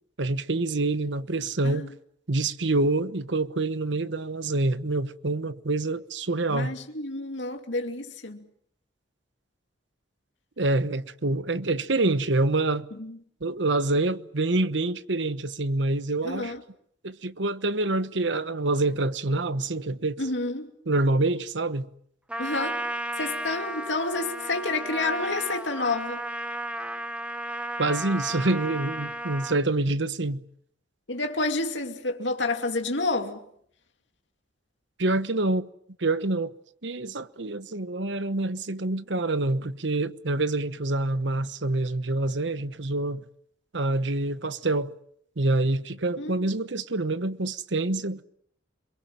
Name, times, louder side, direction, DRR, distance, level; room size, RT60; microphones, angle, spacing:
voice 1, 0.2-1.9 2.3-6.7 10.6-12.9 13.4-16.5 17.0-20.2 20.9-21.9 27.8-30.4 35.0-35.7 36.0-36.5 36.8-43.2 43.7-44.9 45.4-48.2, right 2 dB, 75° right, 1.1 m, -26 dB
voice 2, 6.5-8.4 13.0-13.2 16.2-16.6 20.2-20.7 22.4-22.8 23.2-26.2 31.1-33.4 46.2-46.5, left 3 dB, 75° left, 2.6 m, -29 dB
Trumpet, 22.3-29.6, right 1 dB, 5° right, 1.5 m, -34 dB
29.0 x 22.5 x 7.5 m
head